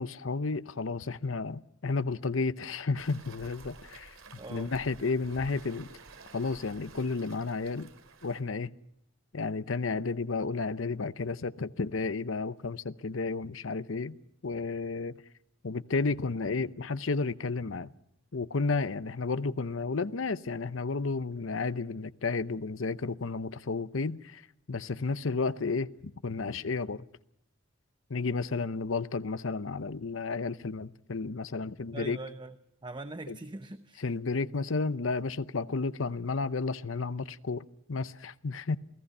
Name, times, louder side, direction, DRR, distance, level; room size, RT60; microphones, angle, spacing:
voice 1, 0.0-4.2 4.5-5.9 6.3-7.9 8.2-8.7 9.3-14.2 14.4-15.2 15.6-17.9 18.3-24.4 24.7-27.0 28.1-32.2 33.3-33.4 34.0-38.8, left 4 dB, 75° left, 0.8 m, -32 dB
Waves surf, 2.9-8.4, right 3 dB, 85° right, 2.6 m, -51 dB
voice 2, 4.4-4.7 31.9-32.5 32.8-34.0, right 2 dB, 25° right, 0.8 m, -42 dB
28.0 x 17.5 x 5.5 m
head